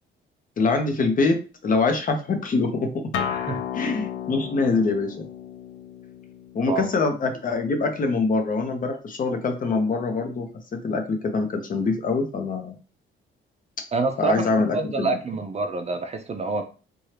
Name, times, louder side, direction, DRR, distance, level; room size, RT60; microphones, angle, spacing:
voice 1, 0.6-2.9 3.7-5.2 6.5-12.8 14.2-15.1, left 3 dB, 45° left, 5 dB, 0.7 m, -24 dB
Acoustic guitar, 3.1-8.3, left 8 dB, 75° left, 0.4 m, -34 dB
voice 2, 3.3-3.6 6.7-6.9 13.9-16.6, right 4 dB, 35° right, 5 dB, 0.4 m, -27 dB
2.8 x 2.3 x 3.2 m, 0.35 s
cardioid pair, 90°, 20 cm